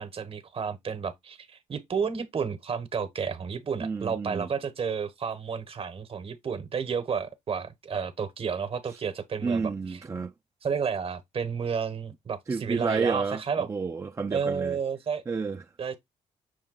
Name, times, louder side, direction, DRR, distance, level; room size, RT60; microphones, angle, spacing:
voice 1, 0.0-10.0 10.6-13.7 14.3-15.2 15.8-16.0, right 6 dB, 45° right, 0.9 m, -31 dB
voice 2, 3.8-4.5 8.9-9.0 9.4-10.3 12.5-14.8 15.3-15.7, right 4 dB, 20° right, 0.3 m, -30 dB
6.3 x 2.2 x 3.8 m
supercardioid pair, 70°, 14 cm